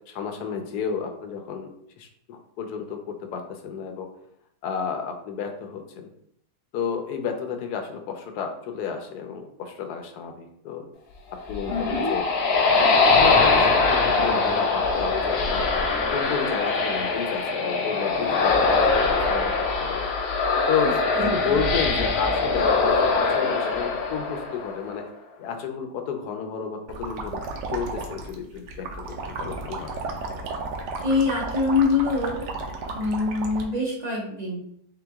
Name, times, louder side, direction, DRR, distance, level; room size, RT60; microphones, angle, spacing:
voice 1, 0.0-1.7 2.0-4.1 4.6-6.1 6.7-10.9 11.5-12.3 13.0-15.7 16.1-20.1 20.7-25.1 25.4-27.4 27.7-29.9, left 6 dB, 75° left, 5 dB, 1.2 m, -31 dB
sound 1, 11.3-24.9, left 4 dB, 60° left, 0.7 m, -22 dB
voice 2, 11.7-12.1 20.8-21.3 31.0-32.6 32.9-34.6, left 3 dB, 40° right, -3 dB, 0.6 m, -25 dB
sound 2, 26.9-33.6, right 3 dB, 90° right, 1.3 m, -33 dB
3.8 x 3.0 x 3.4 m, 0.71 s
omnidirectional pair, 1.7 m